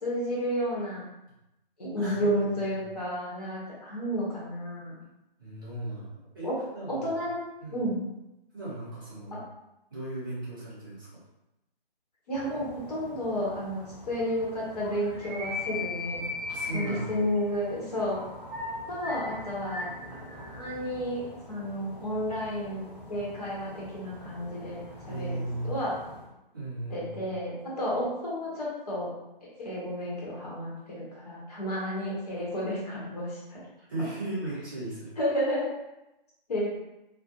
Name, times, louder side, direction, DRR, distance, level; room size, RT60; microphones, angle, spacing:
voice 1, 0.0-1.0 1.8-5.0 6.4-6.6 6.9-7.4 7.7-8.0 9.3-9.4 12.3-16.2 16.7-18.2 18.9-22.8 23.1-25.9 26.9-29.1 29.4-33.6 35.2-35.7 36.5-36.7, equal, 40° left, -6 dB, 0.9 m, -32 dB
voice 2, 2.0-2.8 5.4-7.1 7.6-7.8 8.5-9.4 9.9-11.2 16.5-17.2 25.1-25.7 26.5-27.3 33.9-35.1, right 2 dB, 20° right, -11 dB, 0.7 m, -37 dB
sound 1, 12.3-26.3, left 2 dB, 15° left, 1.1 m, -41 dB
2.3 x 2.1 x 2.8 m, 0.92 s
figure-of-eight pair, 155°, 29 cm